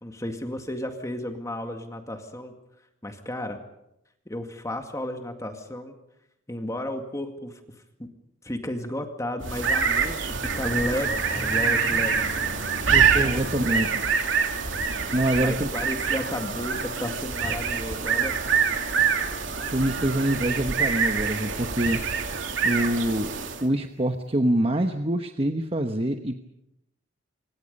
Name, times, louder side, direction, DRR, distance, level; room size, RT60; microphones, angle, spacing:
voice 1, 0.0-2.5 3.0-3.6 4.3-5.9 6.5-7.6 8.0-8.1 8.4-12.2 13.0-13.9 15.4-18.4, left 1 dB, 15° left, 5 dB, 2.1 m, -33 dB
sound 1, 9.4-23.7, right 6 dB, 85° right, 2.8 m, -25 dB
voice 2, 12.9-14.3 15.1-15.7 19.7-22.2 22.6-23.3 23.6-26.4, right 1 dB, 30° right, 6 dB, 1.1 m, -25 dB
26.0 x 24.0 x 5.4 m, 0.83 s
head